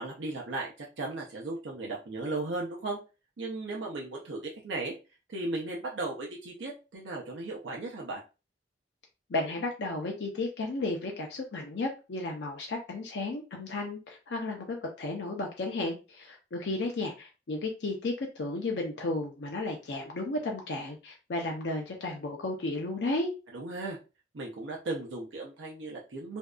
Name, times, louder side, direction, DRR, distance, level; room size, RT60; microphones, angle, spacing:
voice 1, 0.0-3.0 3.4-4.9 5.3-8.2 23.5-24.0 24.3-26.4, right 2 dB, 85° right, -2 dB, 0.6 m, -36 dB
voice 2, 9.3-23.3, left 2 dB, 70° left, 1 dB, 0.5 m, -33 dB
2.6 x 2.2 x 2.3 m, 0.30 s
head